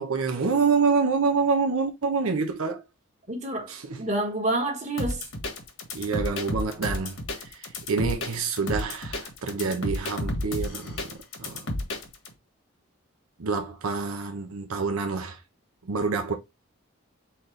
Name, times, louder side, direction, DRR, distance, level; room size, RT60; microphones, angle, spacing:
voice 1, 0.0-2.8 3.7-4.0 5.9-11.6 13.4-15.4 15.9-16.3, right 5 dB, 85° right, 0.7 m, -27 dB
voice 2, 3.3-3.7 4.0-5.2, right 2 dB, 35° right, 1.4 m, -28 dB
sound 1, 5.0-12.3, left 1 dB, 60° left, 1.4 m, -31 dB
4.2 x 4.0 x 3.1 m
head